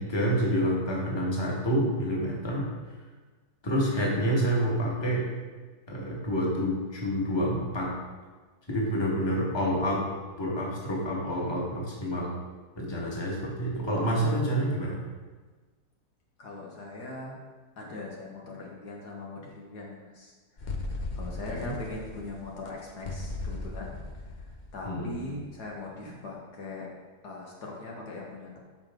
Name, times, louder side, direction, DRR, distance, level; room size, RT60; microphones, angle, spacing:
voice 1, 0.0-2.7 3.6-5.3 5.9-8.0 8.7-10.0 10.4-12.4 12.7-15.0 21.5-21.7 24.8-25.2, equal, 15° left, -4 dB, 1.7 m, -28 dB
voice 2, 16.4-17.4 17.8-24.0 24.3-26.9 27.2-28.6, left 2 dB, 70° left, -2 dB, 2.0 m, -41 dB
sound 1, 20.6-25.4, left 2 dB, 40° left, 0.6 m, -37 dB
13.5 x 5.2 x 3.8 m, 1.4 s
omnidirectional pair, 1.9 m